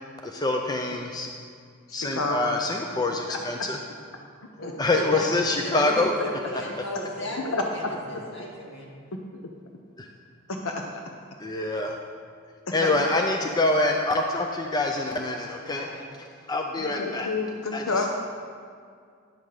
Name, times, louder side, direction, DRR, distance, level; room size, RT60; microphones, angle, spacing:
voice 1, 0.2-1.3 1.9-3.8 4.8-6.1 10.0-10.1 11.4-12.0 12.7-15.9 16.5-17.3 17.7-17.8, left 2 dB, 20° left, 2 dB, 0.5 m, -25 dB
voice 2, 1.9-2.6 3.3-3.4 4.6-4.7 7.5-7.6 9.3-9.4 10.5-10.8 12.8-12.9 16.8-18.1, left 3 dB, 80° left, 2 dB, 0.7 m, -29 dB
voice 3, 4.6-8.9 15.6-16.1, equal, 60° left, -3 dB, 2.0 m, -35 dB
10.5 x 5.6 x 6.5 m, 2.2 s
head